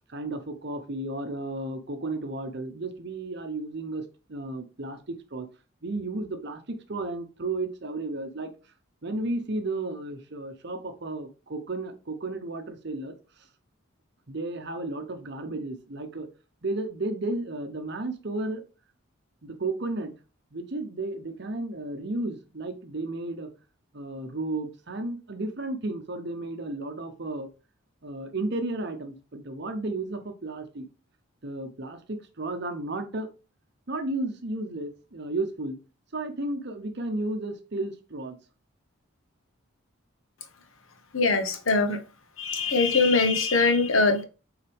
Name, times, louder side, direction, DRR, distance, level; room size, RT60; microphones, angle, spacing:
voice 1, 0.0-5.5 5.8-8.5 9.0-13.1 14.3-16.3 16.6-18.6 19.4-20.1 20.5-23.5 23.9-27.5 28.0-30.9 31.4-33.3 33.9-35.8 36.1-38.4, right 2 dB, 50° right, 0.8 m, -33 dB
voice 2, 41.1-42.0 42.4-44.2, left 3 dB, 75° left, 1.1 m, -22 dB
7.2 x 3.9 x 3.5 m
head